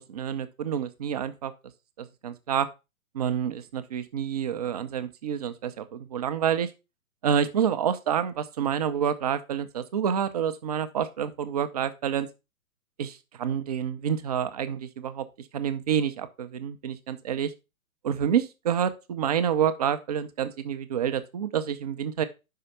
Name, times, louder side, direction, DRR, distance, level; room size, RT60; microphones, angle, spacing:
voice 1, 0.0-1.5 2.0-2.7 3.1-6.7 7.2-12.3 13.0-15.2 15.5-17.5 18.0-22.2, right 8 dB, 30° right, 10 dB, 0.6 m, -28 dB
5.7 x 4.7 x 5.5 m, 0.27 s
figure-of-eight pair, 120°, 43 cm